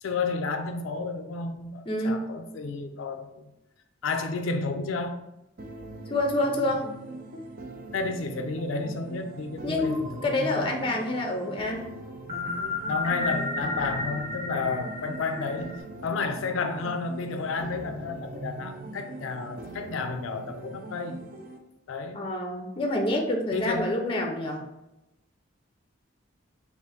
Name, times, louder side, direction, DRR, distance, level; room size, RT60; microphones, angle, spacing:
voice 1, 0.0-3.5 4.0-5.2 7.9-10.7 12.9-15.8 16.0-21.2 21.9-22.3 23.5-23.8, left 4 dB, 80° left, 7 dB, 0.4 m, -31 dB
voice 2, 1.9-2.3 6.1-6.9 9.6-11.9 22.1-24.6, left 1 dB, 25° left, 2 dB, 0.5 m, -27 dB
sound 1, 5.6-21.6, right 2 dB, 45° right, 0.5 m, -42 dB
sound 2, 9.8-11.1 12.3-15.8, left 2 dB, 20° right, 0.9 m, -33 dB
3.6 x 2.5 x 4.0 m, 0.91 s
head